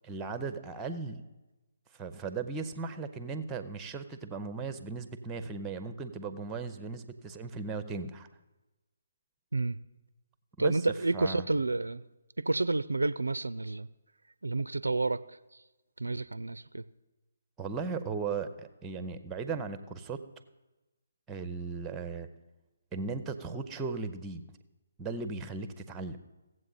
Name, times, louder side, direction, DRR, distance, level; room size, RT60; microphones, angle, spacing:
voice 1, 0.0-1.2 1.9-8.3 10.6-10.8 11.1-11.4 17.6-20.2 21.3-22.3 22.9-24.4 25.0-26.2, right 4 dB, 10° right, 11 dB, 0.6 m, -37 dB
voice 2, 10.6-12.0 12.4-13.9 14.4-15.6 16.0-16.8, right 2 dB, 70° right, 16 dB, 0.3 m, -30 dB
17.0 x 7.6 x 3.9 m, 1.1 s
figure-of-eight pair, 140°, 0 cm